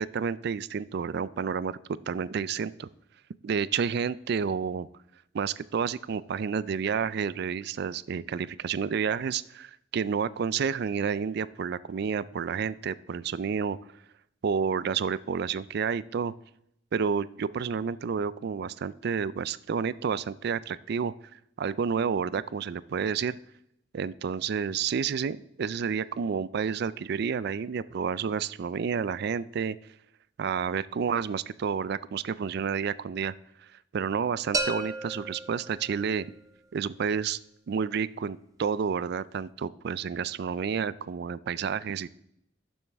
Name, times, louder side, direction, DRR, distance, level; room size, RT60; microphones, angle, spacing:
voice 1, 0.0-1.8 2.1-2.9 3.4-4.9 5.3-13.8 14.4-16.3 16.9-23.4 23.9-29.8 30.4-33.3 33.9-36.3 36.7-37.4 37.7-42.1, right 6 dB, 60° right, 18 dB, 0.4 m, -30 dB
sound 1, 34.5-36.4, right 2 dB, 20° right, 0.6 m, -33 dB
11.5 x 7.3 x 3.5 m, 0.77 s
head